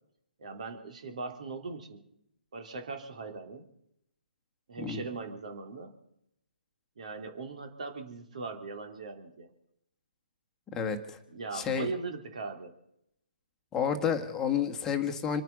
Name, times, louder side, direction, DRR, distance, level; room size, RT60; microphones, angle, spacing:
voice 1, 0.4-2.0 2.5-3.7 4.7-5.9 7.0-9.5 11.3-12.7, right 3 dB, 50° right, 5 dB, 3.2 m, -40 dB
voice 2, 10.7-11.2 11.5-11.9 13.7-15.4, left 7 dB, 10° left, 4 dB, 1.6 m, -30 dB
27.5 x 9.3 x 5.4 m, 0.77 s
figure-of-eight pair, 135°, 5 cm